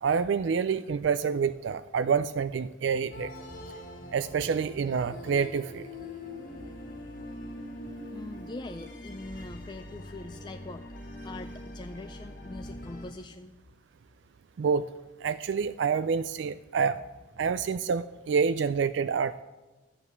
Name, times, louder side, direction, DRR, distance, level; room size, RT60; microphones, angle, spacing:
voice 1, 0.0-3.3 4.1-5.9 14.6-14.9 15.2-17.0 17.4-19.4, right 6 dB, 65° right, 13 dB, 0.4 m, -27 dB
sound 1, 3.1-13.1, left 1 dB, 45° left, 2.0 m, -43 dB
voice 2, 8.1-10.9 11.2-13.6, left 2 dB, 25° left, 7 dB, 0.4 m, -43 dB
12.0 x 7.4 x 8.1 m, 1.2 s
head